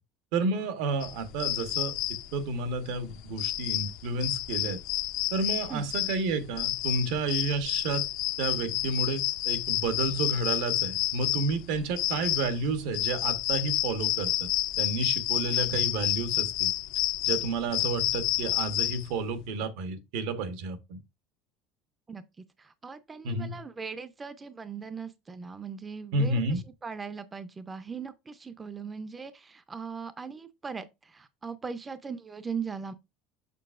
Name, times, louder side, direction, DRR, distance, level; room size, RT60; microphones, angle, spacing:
voice 1, 0.3-1.9 2.3-4.8 5.3-8.1 8.4-14.5 14.8-16.7 17.2-21.0 23.2-23.6 26.1-26.6, right 3 dB, 75° right, 1.1 m, -31 dB
sound 1, 1.0-19.2, left 15 dB, 65° left, 0.6 m, -30 dB
voice 2, 22.6-32.9, right 5 dB, 15° right, 0.5 m, -39 dB
6.7 x 5.6 x 2.5 m
cardioid pair, 140°, 0 cm